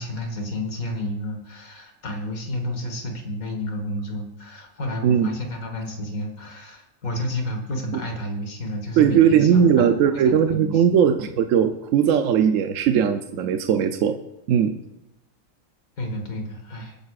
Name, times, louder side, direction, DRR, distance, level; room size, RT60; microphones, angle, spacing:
voice 1, 0.0-11.0 16.0-17.0, left 1 dB, 85° left, 3 dB, 2.0 m, -31 dB
voice 2, 9.0-14.2 14.5-14.7, right 8 dB, 75° right, 7 dB, 1.0 m, -19 dB
22.5 x 9.4 x 2.4 m, 0.89 s
omnidirectional pair, 1.4 m